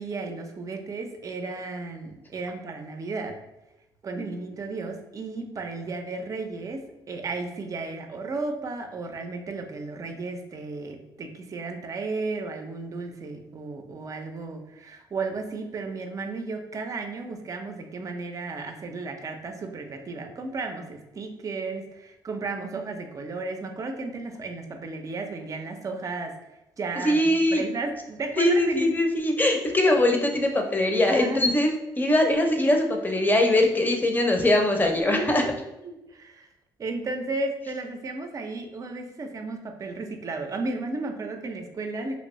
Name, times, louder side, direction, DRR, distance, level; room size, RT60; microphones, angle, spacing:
voice 1, 0.0-3.3 4.0-26.3 26.8-28.9 31.1-31.4 35.1-35.5 35.8-36.5 36.8-42.2, right 3 dB, 40° right, 5 dB, 0.6 m, -34 dB
voice 2, 27.0-27.6 28.4-35.4, left 1 dB, 20° left, 3 dB, 0.7 m, -22 dB
3.0 x 2.6 x 3.1 m, 0.93 s
cardioid pair, 80°, 9 cm